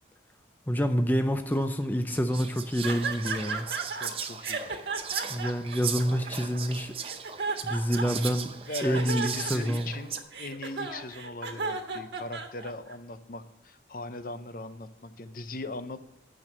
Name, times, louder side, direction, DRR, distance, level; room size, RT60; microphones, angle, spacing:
voice 1, 0.7-3.7 5.3-6.9 7.6-8.5 8.8-9.9, equal, 10° left, 7 dB, 0.4 m, -27 dB
Whispering, 1.5-1.6 2.1-10.2, right 7 dB, 30° right, 0.7 m, -38 dB
sound 1, 2.8-4.1 4.4-6.6 7.0-8.3 8.7-12.9, right 4 dB, 70° right, 1.3 m, -34 dB
voice 2, 4.0-4.8 8.5-16.1, left 2 dB, 50° left, 11 dB, 0.6 m, -40 dB
9.2 x 6.0 x 7.4 m, 0.79 s
head